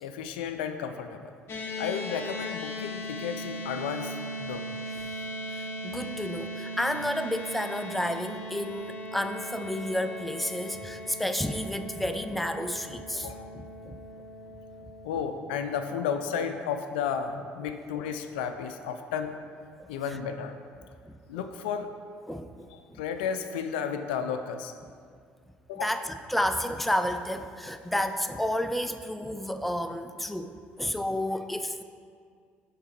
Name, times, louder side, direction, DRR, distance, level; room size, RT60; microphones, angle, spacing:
voice 1, 0.0-1.3 1.8-4.7 13.1-13.5 15.0-19.4 19.9-20.5 21.3-21.9 22.7-24.7 25.7-25.9, left 7 dB, 75° left, 8 dB, 0.3 m, -33 dB
sound 1, 1.5-15.9, equal, 50° left, 0.8 m, -39 dB
voice 2, 5.5-14.0 21.0-21.2 22.3-23.0 25.8-31.8, left 1 dB, ahead, 9 dB, 0.4 m, -31 dB
6.7 x 3.6 x 4.4 m, 2.2 s
hypercardioid pair, 55°, 5 cm